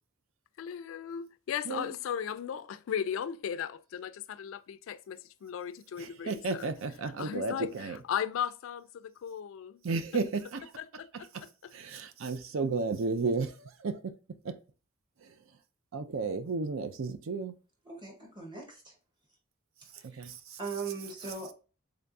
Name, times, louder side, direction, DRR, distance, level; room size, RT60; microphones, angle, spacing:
voice 1, 0.6-6.7 7.2-9.8 10.8-11.7, left 8 dB, 70° left, 0.3 m, -37 dB
voice 2, 6.0-8.0 9.8-10.6 11.3-11.4 11.7-14.1 14.4-14.5 15.2-15.3 15.9-17.6 20.1-20.6, right 4 dB, 75° right, 0.5 m, -33 dB
voice 3, 17.8-19.0 20.0-20.3 20.6-21.5, right 4 dB, 25° right, 1.2 m, -40 dB
3.8 x 3.4 x 2.6 m
head